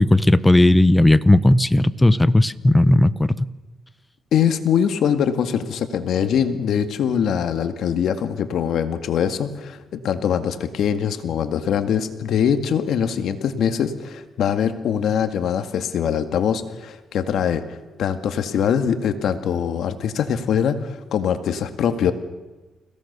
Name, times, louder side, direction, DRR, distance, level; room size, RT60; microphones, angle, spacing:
voice 1, 0.0-3.5, left 1 dB, 10° left, 15 dB, 1.0 m, -15 dB
voice 2, 4.3-22.1, left 8 dB, 70° left, 8 dB, 1.9 m, -23 dB
29.5 x 17.0 x 6.8 m, 1.2 s
cardioid pair, 90°, 0 cm